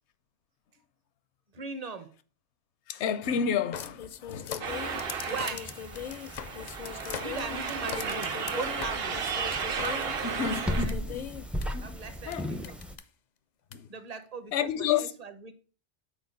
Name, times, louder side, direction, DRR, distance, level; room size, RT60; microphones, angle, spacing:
voice 1, 1.5-2.1 5.3-5.8 7.2-9.2 9.8-11.2 11.8-12.8 13.9-15.5, right 4 dB, 40° right, 0.7 m, -39 dB
voice 2, 2.9-4.8 10.4-11.2 11.7-11.9 12.3-12.5 13.7-13.9 14.5-15.1, left 8 dB, 75° left, 0.9 m, -30 dB
sound 1, 3.7-11.6 12.3-12.4 12.6-13.0 13.7-13.8, left 9 dB, 55° left, 0.5 m, -39 dB
sound 2, 4.6-12.9, equal, ahead, 0.3 m, -38 dB
sound 3, 4.6-10.9, right 6 dB, 60° right, 1.0 m, -34 dB
6.4 x 4.4 x 5.2 m
omnidirectional pair, 1.2 m